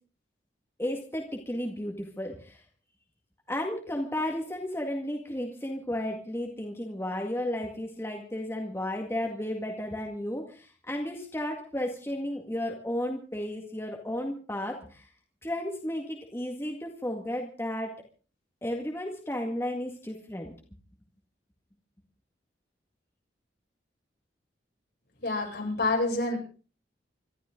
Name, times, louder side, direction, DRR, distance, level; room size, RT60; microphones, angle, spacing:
voice 1, 0.8-2.6 3.5-15.1 15.4-17.9 18.6-20.5, left 1 dB, 15° left, 1 dB, 2.0 m, -33 dB
voice 2, 25.2-26.4, left 2 dB, 60° left, 0 dB, 7.5 m, -27 dB
26.5 x 13.0 x 3.8 m, 0.39 s
head